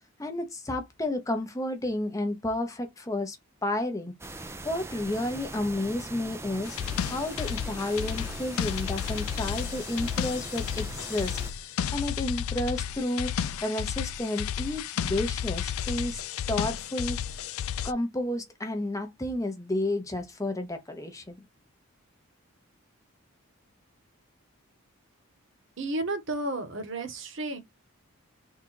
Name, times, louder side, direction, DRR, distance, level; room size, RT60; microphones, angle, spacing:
voice 1, 0.2-3.4 3.6-4.1 4.6-16.2 16.5-17.4 17.8-21.4, left 1 dB, 15° left, 0.7 m, -31 dB
sound 1, 4.2-11.5, right 2 dB, 10° right, 0.3 m, -41 dB
sound 2, 6.7-17.9, left 8 dB, 75° left, 0.4 m, -32 dB
voice 2, 25.8-27.6, right 2 dB, 55° right, 1.1 m, -32 dB
3.7 x 2.4 x 4.6 m
head